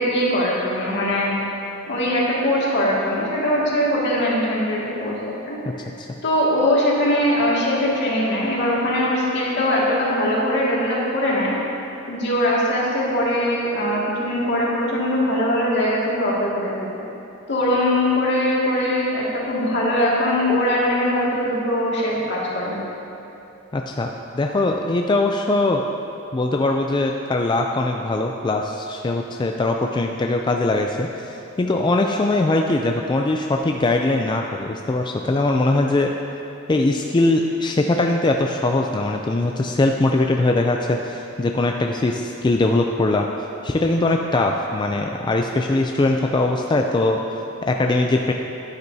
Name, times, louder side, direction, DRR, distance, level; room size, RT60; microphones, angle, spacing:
voice 1, 0.0-1.4 1.9-5.2 5.5-5.9 6.2-11.6 12.1-16.9 17.5-22.7, left 1 dB, 60° left, -6 dB, 2.1 m, -21 dB
voice 2, 23.7-24.1 24.3-25.8 26.3-36.1 36.7-43.3 43.6-47.2 47.7-48.3, left 2 dB, 25° left, 2 dB, 0.4 m, -21 dB
11.5 x 9.6 x 2.7 m, 2.9 s
head